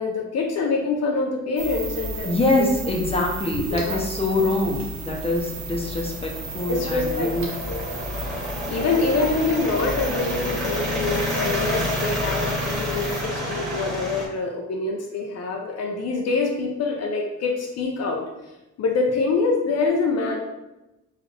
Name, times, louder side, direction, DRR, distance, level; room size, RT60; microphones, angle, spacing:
voice 1, 0.0-2.3 2.6-2.7 3.7-4.0 6.7-7.3 7.7-8.0 8.7-18.5 18.8-20.4, left 3 dB, 55° left, 1 dB, 0.6 m, -25 dB
sound 1, 1.6-13.2, right 2 dB, 70° right, 0.9 m, -34 dB
voice 2, 2.2-7.5, left 2 dB, 20° left, 0 dB, 0.8 m, -24 dB
sound 2, 5.2-14.3, left 1 dB, ahead, 1.4 m, -29 dB
4.1 x 2.6 x 3.3 m, 0.98 s
cardioid pair, 90°, 30 cm